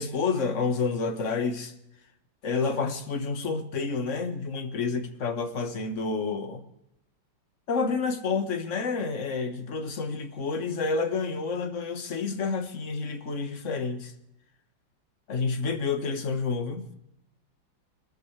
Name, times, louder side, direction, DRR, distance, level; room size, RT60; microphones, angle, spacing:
voice 1, 0.0-1.7 2.4-6.6 7.7-14.1 15.3-16.9, left 4 dB, 40° left, 1.5 m, -29 dB
23.0 x 14.0 x 3.3 m
omnidirectional pair, 2.3 m